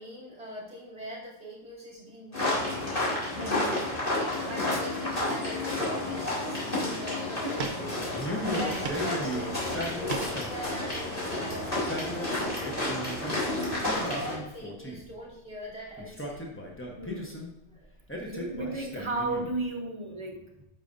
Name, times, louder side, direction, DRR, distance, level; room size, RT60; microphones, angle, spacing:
voice 1, 0.0-2.7 3.3-3.9 4.3-8.0 8.3-9.7 9.9-16.4 17.7-17.9, equal, 5° right, -7 dB, 2.7 m, -42 dB
sound 1, 2.3-14.3, left 2 dB, 30° left, 2.4 m, -31 dB
voice 2, 3.3-3.7 4.5-4.7 7.4-7.6 8.4-8.9 17.0-17.4 18.3-20.6, right 2 dB, 25° right, 2 dB, 0.8 m, -34 dB
sound 2, 4.8-5.6 6.0-6.2 6.5-7.0 7.6-8.2 8.6-9.2 9.5-10.5, right 5 dB, 65° right, 1.0 m, -39 dB
Male speech man speaking, 8.1-10.7 11.6-13.4 13.8-15.1 16.0-17.5 18.1-19.6, equal, 10° left, 0.9 m, -36 dB
8.9 x 5.6 x 2.6 m, 0.87 s
omnidirectional pair, 1.3 m